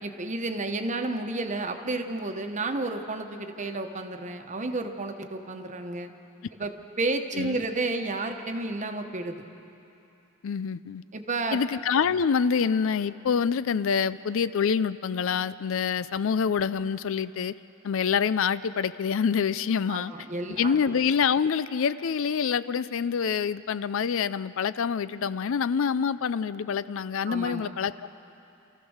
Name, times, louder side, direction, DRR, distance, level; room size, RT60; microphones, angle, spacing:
voice 1, 0.0-6.1 6.5-9.4 11.1-11.6 19.9-20.7 27.3-27.7, right 2 dB, 35° right, 6 dB, 1.1 m, -31 dB
voice 2, 10.4-11.0 11.5-17.5 17.8-20.1 20.6-28.1, left 6 dB, 70° left, 15 dB, 0.4 m, -26 dB
28.0 x 14.5 x 6.4 m, 2.8 s
head